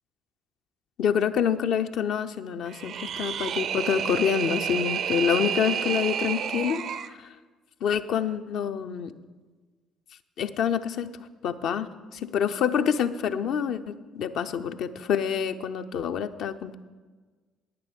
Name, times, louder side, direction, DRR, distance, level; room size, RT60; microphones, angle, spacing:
voice 1, 1.0-7.3 7.8-9.1 10.4-11.1 11.4-16.8, left 8 dB, 55° left, 9 dB, 0.6 m, -27 dB
sound 1, 2.7-7.1, right 8 dB, 50° right, 0.5 m, -30 dB
9.8 x 9.6 x 5.3 m, 1.4 s
figure-of-eight pair, 50°, 0 cm